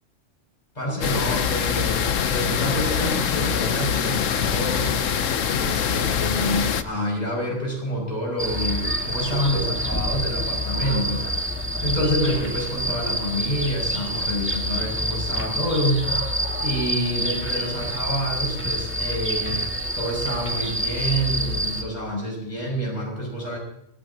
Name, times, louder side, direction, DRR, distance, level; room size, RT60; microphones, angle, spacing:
voice 1, 0.7-4.9 5.5-11.3 11.8-16.1 16.6-19.6 19.9-23.6, equal, 35° left, -2 dB, 6.5 m, -27 dB
sound 1, 1.0-6.8, left 7 dB, 80° left, 1.2 m, -24 dB
sound 2, 8.4-21.8, equal, 10° right, 2.1 m, -27 dB
25.5 x 18.0 x 2.9 m, 0.73 s
omnidirectional pair, 1.3 m